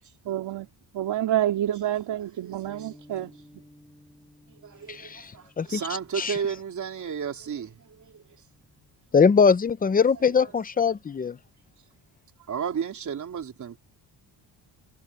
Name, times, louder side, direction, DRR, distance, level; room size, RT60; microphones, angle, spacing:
voice 1, 0.2-0.7 0.9-3.3, right 12 dB, 75° right, 2.5 m, -28 dB
voice 2, 2.4-2.9 4.5-8.2 12.5-13.8, right 7 dB, 45° right, 3.6 m, -33 dB
Bass guitar, 2.6-8.9, left 1 dB, 5° left, 3.9 m, -56 dB
voice 3, 4.9-5.8 6.2-6.3 9.1-11.4, left 5 dB, 20° left, 0.6 m, -22 dB
wide cardioid pair, 170°, 42 cm